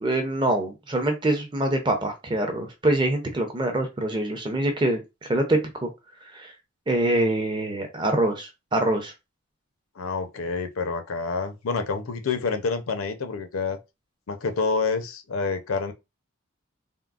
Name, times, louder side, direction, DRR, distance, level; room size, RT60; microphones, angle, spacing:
voice 1, 0.0-5.9 6.2-6.5 6.9-9.1, right 1 dB, 25° right, 0.6 m, -25 dB
voice 2, 10.0-13.8 14.3-15.9, left 4 dB, 85° left, 0.6 m, -28 dB
3.6 x 2.0 x 2.3 m
head